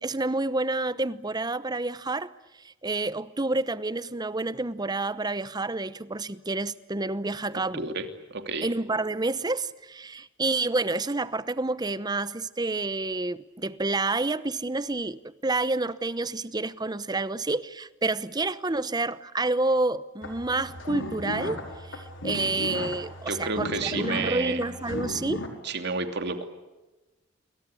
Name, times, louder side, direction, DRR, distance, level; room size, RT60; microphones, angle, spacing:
voice 1, 0.0-2.3 2.6-7.8 8.6-21.6 21.9-25.4, right 2 dB, 20° right, 0.9 m, -29 dB
voice 2, 7.5-8.7 23.3-24.6 25.6-26.4, right 3 dB, 60° right, 2.9 m, -31 dB
sound 1, 20.2-25.5, left 1 dB, 65° left, 4.9 m, -35 dB
28.5 x 23.0 x 8.6 m
head